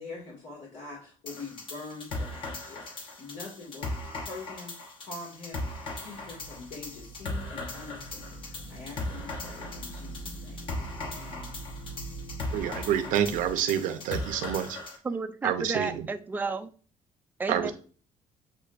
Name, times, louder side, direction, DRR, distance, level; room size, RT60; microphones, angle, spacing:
voice 1, 0.0-10.7 11.1-11.6, left 3 dB, 80° left, 2.0 m, -44 dB
sound 1, 1.3-15.0, left 2 dB, 40° left, 0.9 m, -38 dB
sound 2, 6.0-13.5, right 1 dB, 55° left, 1.0 m, -44 dB
voice 2, 12.5-14.8 15.4-16.1 17.5-17.7, right 9 dB, 80° right, 0.7 m, -28 dB
voice 3, 15.0-16.7 17.4-17.7, right 4 dB, 15° right, 0.4 m, -32 dB
8.0 x 2.7 x 2.5 m
cardioid pair, 155°, 14 cm